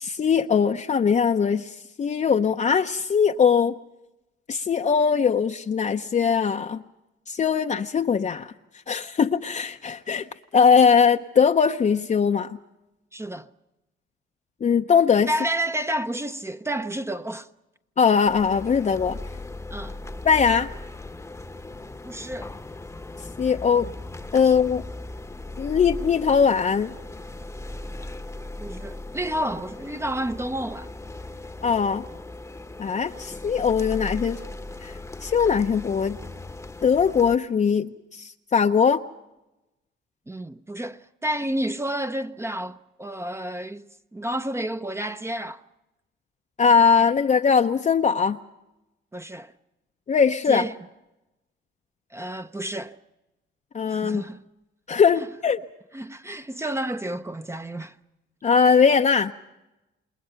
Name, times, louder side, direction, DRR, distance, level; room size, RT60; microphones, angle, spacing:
voice 1, 0.0-3.7 4.5-6.8 7.3-8.5 8.9-10.3 10.5-12.6 14.6-15.3 18.0-19.2 20.2-20.7 23.4-23.9 24.3-24.8 25.6-26.9 31.6-32.0 32.8-34.4 34.8-36.2 36.8-39.0 46.6-48.4 50.1-50.6 53.7-54.2 54.9-55.6 58.4-59.3, left 6 dB, 35° left, 0.7 m, -21 dB
voice 2, 13.1-13.5 15.3-17.5 19.7-20.0 22.0-22.6 24.4-24.5 28.6-30.9 40.3-45.6 49.1-49.5 50.5-50.8 52.1-53.0 53.9-54.4 55.9-58.0, right 1 dB, 15° right, 0.7 m, -30 dB
sound 1, 18.3-37.4, left 2 dB, 15° left, 1.0 m, -38 dB
28.0 x 20.5 x 5.8 m
cardioid pair, 90°, 20 cm